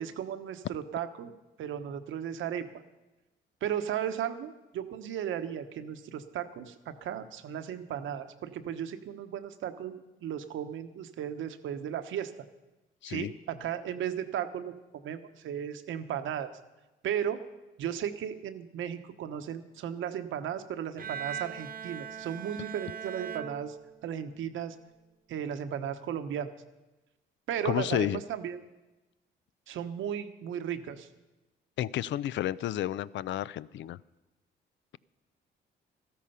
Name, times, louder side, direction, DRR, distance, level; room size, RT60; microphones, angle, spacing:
voice 1, 0.0-1.3 1.6-2.7 3.6-12.3 13.0-16.5 17.0-17.4 17.8-23.8 24.0-24.8 25.3-26.5 27.5-28.6 29.7-31.1, right 9 dB, 80° right, 9 dB, 1.1 m, -35 dB
Bowed string instrument, 21.0-24.3, right 8 dB, 45° right, 1.0 m, -40 dB
voice 2, 27.6-28.2 31.8-34.0, left 12 dB, 70° left, 19 dB, 0.5 m, -31 dB
14.0 x 13.0 x 5.6 m, 1.1 s
cardioid pair, 90°, 20 cm